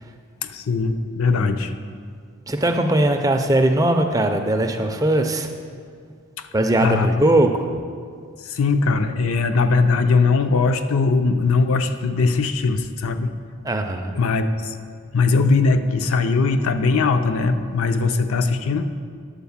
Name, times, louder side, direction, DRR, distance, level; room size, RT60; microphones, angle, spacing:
voice 1, 0.4-1.7 6.8-7.2 8.4-13.3 14.1-14.8 15.1-19.0, left 4 dB, 70° left, 8 dB, 0.5 m, -20 dB
voice 2, 2.5-5.5 6.5-7.5 13.6-14.1, right 1 dB, 15° right, 5 dB, 0.4 m, -19 dB
10.5 x 4.2 x 7.1 m, 2.1 s
head